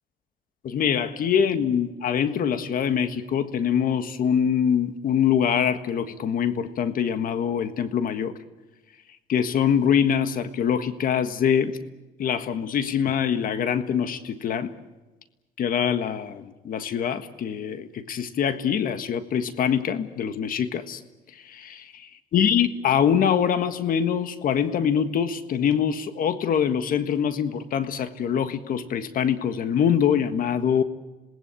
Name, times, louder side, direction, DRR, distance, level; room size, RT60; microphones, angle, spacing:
voice 1, 0.6-8.3 9.3-11.8 12.2-14.7 15.6-21.0 21.4-30.8, left 8 dB, 55° left, 10 dB, 1.6 m, -24 dB
27.0 x 19.5 x 8.6 m, 1.1 s
cardioid pair, 110°, 17 cm